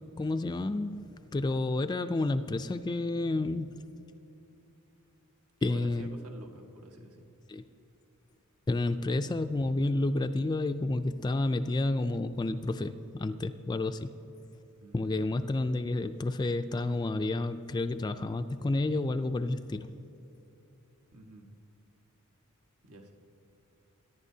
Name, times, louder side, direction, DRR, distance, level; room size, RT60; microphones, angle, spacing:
voice 1, 0.2-3.8 5.6-6.1 7.5-7.6 8.7-14.1 14.9-19.9, left 2 dB, 20° left, 9 dB, 0.3 m, -30 dB
voice 2, 5.6-7.3 14.8-15.3 21.1-21.5 22.8-23.1, right 1 dB, 80° right, 2 dB, 1.4 m, -49 dB
24.0 x 10.5 x 2.7 m, 2.9 s
head